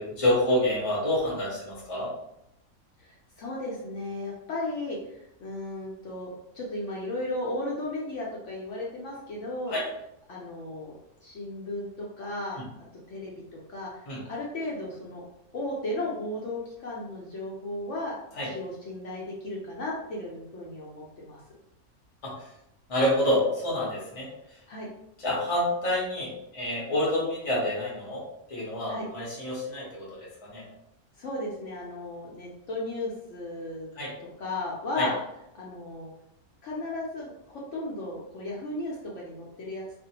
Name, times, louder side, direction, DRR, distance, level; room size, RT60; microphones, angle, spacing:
voice 1, 0.0-2.1 9.7-9.8 14.1-14.2 18.4-18.5 22.2-22.5 22.9-24.6 25.2-30.7 33.9-34.1 35.0-35.1, left 1 dB, 35° left, -4 dB, 0.6 m, -28 dB
voice 2, 3.0-9.7 10.3-11.0 11.2-12.6 13.1-13.3 13.7-15.2 15.5-18.1 18.4-21.4 24.7-24.9 28.9-29.0 31.2-33.9 34.4-35.1 35.5-36.1 36.6-39.8, left 2 dB, 65° left, -4 dB, 0.8 m, -35 dB
2.5 x 2.1 x 2.8 m, 0.82 s
omnidirectional pair, 1.5 m